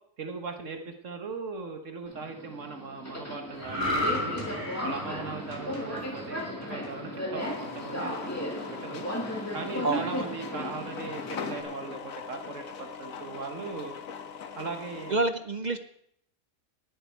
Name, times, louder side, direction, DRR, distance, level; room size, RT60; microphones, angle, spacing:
voice 1, 0.2-4.4 4.8-6.4 6.7-9.1 9.5-14.0 14.6-15.2, right 4 dB, 65° right, 5 dB, 1.5 m, -39 dB
Subway metro underground, 2.1-11.6, left 1 dB, 10° left, 2.1 m, -36 dB
sound 1, 3.6-7.1 7.5-7.8, left 1 dB, 15° right, 2.8 m, -33 dB
sound 2, 7.4-15.2, left 6 dB, 85° left, 1.5 m, -41 dB
voice 2, 9.8-10.2 15.1-15.8, right 3 dB, 45° right, 9 dB, 0.6 m, -28 dB
19.5 x 7.4 x 4.5 m, 0.71 s
omnidirectional pair, 1.4 m